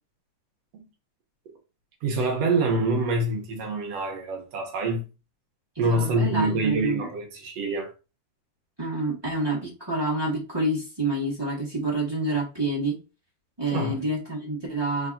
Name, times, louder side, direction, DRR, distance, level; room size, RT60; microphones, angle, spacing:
voice 1, 2.0-5.0 5.8-7.9 13.7-14.0, right 2 dB, 65° right, 1.8 m, -26 dB
voice 2, 5.7-7.1 8.8-13.0 13.6-15.1, right 2 dB, 15° right, 1.0 m, -28 dB
4.5 x 4.3 x 2.6 m
omnidirectional pair, 3.6 m